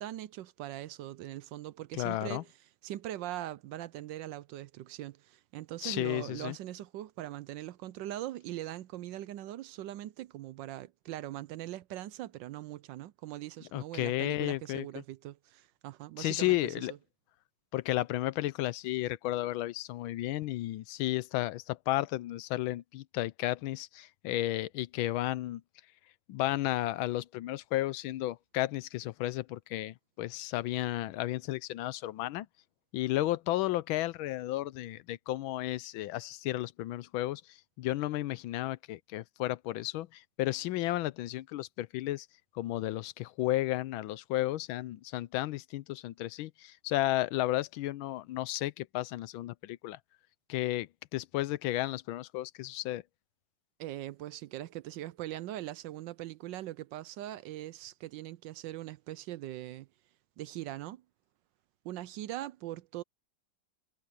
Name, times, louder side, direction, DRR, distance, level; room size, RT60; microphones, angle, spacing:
voice 1, 0.0-2.5 2.8-16.9 53.8-59.9 60.4-61.0 61.8-63.0, right 14 dB, 75° right, 1.2 m, -41 dB
voice 2, 1.9-2.4 5.8-6.6 13.7-15.0 16.2-16.9 17.7-25.6 26.3-32.5 32.9-42.3 42.5-50.0 50.5-53.0, left 16 dB, 85° left, 1.4 m, -33 dB
omnidirectional pair, 2.1 m